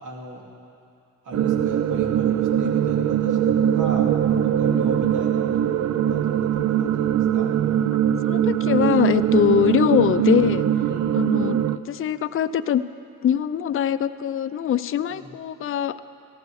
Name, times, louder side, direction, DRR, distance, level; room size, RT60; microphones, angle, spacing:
voice 1, 0.0-0.4 1.2-4.1 4.4-7.5 10.8-11.2 15.1-15.3, right 2 dB, 70° right, -1 dB, 2.5 m, -37 dB
sound 1, 1.3-11.8, right 10 dB, 55° right, 0.5 m, -21 dB
voice 2, 8.3-10.7 11.1-11.6 11.9-12.8 13.2-16.0, left 9 dB, 45° left, 12 dB, 0.5 m, -22 dB
18.0 x 13.5 x 4.8 m, 2.5 s
cardioid pair, 90°, 32 cm